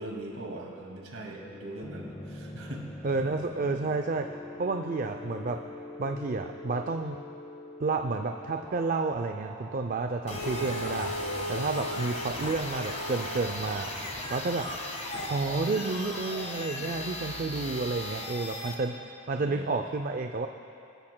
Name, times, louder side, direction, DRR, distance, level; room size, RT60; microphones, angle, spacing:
voice 1, 0.0-2.9 15.1-15.3 19.4-19.7, right 1 dB, 80° right, -1 dB, 2.1 m, -41 dB
sound 1, 1.4-16.9, equal, 15° left, 0.7 m, -46 dB
voice 2, 3.0-4.3 4.6-5.6 6.0-7.2 7.8-13.9 14.3-14.7 15.3-20.5, right 3 dB, 40° right, 5 dB, 0.4 m, -30 dB
sound 2, 10.3-18.7, left 1 dB, 35° left, 1.6 m, -36 dB
22.0 x 13.5 x 2.2 m, 2.6 s
head